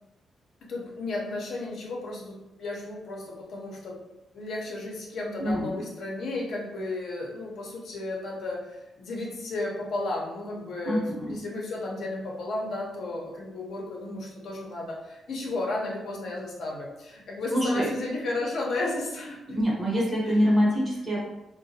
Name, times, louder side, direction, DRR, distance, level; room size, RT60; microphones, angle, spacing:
voice 1, 0.7-4.0 4.3-19.6 20.2-20.4, left 2 dB, 55° left, -2 dB, 0.7 m, -33 dB
voice 2, 5.4-5.8 10.8-11.4 17.5-17.9 19.5-21.2, equal, 25° right, -6 dB, 1.0 m, -25 dB
3.8 x 2.1 x 2.7 m, 0.95 s
wide cardioid pair, 160°, 0 cm